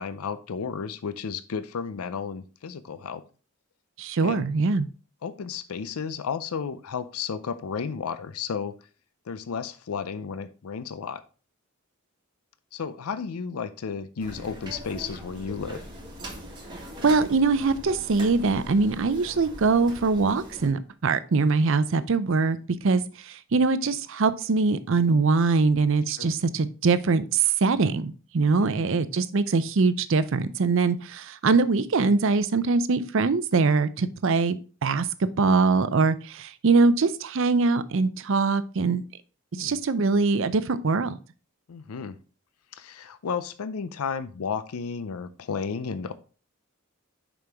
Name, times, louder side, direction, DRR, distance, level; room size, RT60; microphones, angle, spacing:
voice 1, 0.0-3.2 4.2-4.5 5.2-8.8 9.3-11.2 12.7-15.8 26.2-26.3 28.6-28.9 39.6-39.8 41.7-42.2 42.7-46.1, left 6 dB, 85° left, 0.5 m, -33 dB
voice 2, 4.0-4.9 17.0-22.6 22.8-23.0 23.5-35.1 35.4-39.0 39.6-41.2, right 4 dB, 60° right, 0.5 m, -23 dB
sound 1, 14.2-20.7, equal, 20° right, 1.6 m, -41 dB
6.7 x 5.1 x 3.5 m
head